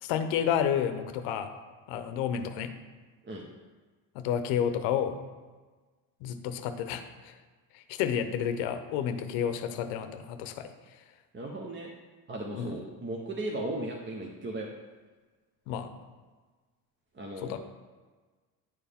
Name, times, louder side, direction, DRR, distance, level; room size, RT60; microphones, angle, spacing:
voice 1, 0.0-1.5 1.9-2.7 4.1-5.2 6.2-7.3 7.7-10.7 12.5-12.8 15.7-15.9 17.4-17.6, left 8 dB, 85° left, 9 dB, 0.8 m, -30 dB
voice 2, 11.3-11.9 12.3-14.7 17.1-17.6, right 1 dB, 25° right, 0 dB, 0.8 m, -36 dB
9.6 x 4.6 x 3.5 m, 1.4 s
supercardioid pair, 85°, 44 cm